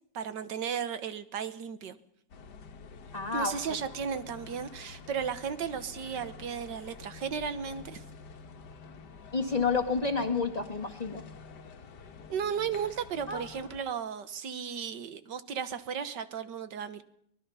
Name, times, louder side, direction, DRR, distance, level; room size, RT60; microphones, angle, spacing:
voice 1, 0.1-2.0 3.3-8.0 12.3-17.0, right 7 dB, 80° right, 12 dB, 1.8 m, -35 dB
sound 1, 2.3-13.8, left 5 dB, 70° left, 1.8 m, -48 dB
voice 2, 3.1-3.6 9.3-11.2 13.3-13.4, left 4 dB, 25° left, 4 dB, 1.8 m, -29 dB
24.0 x 19.5 x 5.6 m, 0.70 s
omnidirectional pair, 1.9 m